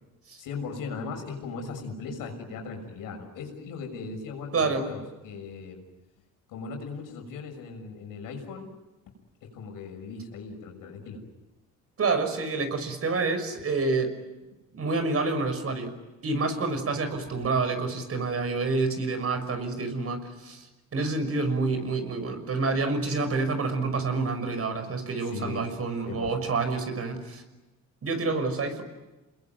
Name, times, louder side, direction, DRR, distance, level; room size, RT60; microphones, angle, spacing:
voice 1, 0.4-5.8 6.5-8.7 9.0-9.1 9.4-11.2 25.2-25.7 26.1-26.4, left 4 dB, 85° left, 4 dB, 6.5 m, -38 dB
voice 2, 4.5-4.9 12.0-14.2 14.7-15.9 16.2-20.7 20.9-27.4 28.0-28.8, right 3 dB, 45° right, 8 dB, 6.0 m, -28 dB
29.0 x 21.5 x 9.5 m, 1.1 s
cardioid pair, 100°, 32 cm